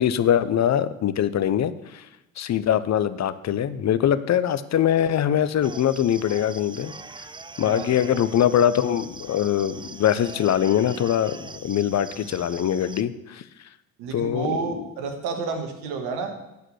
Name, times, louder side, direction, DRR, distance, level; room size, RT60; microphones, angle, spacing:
voice 1, 0.0-2.1 2.4-6.9 7.6-13.4 14.1-14.9, left 10 dB, 40° left, 13 dB, 0.8 m, -23 dB
sound 1, 5.6-13.0, right 3 dB, 10° right, 0.6 m, -42 dB
voice 2, 7.6-8.1 14.0-16.4, right 5 dB, 70° right, 5 dB, 1.8 m, -30 dB
12.0 x 5.0 x 7.9 m, 0.94 s
hypercardioid pair, 55°, 42 cm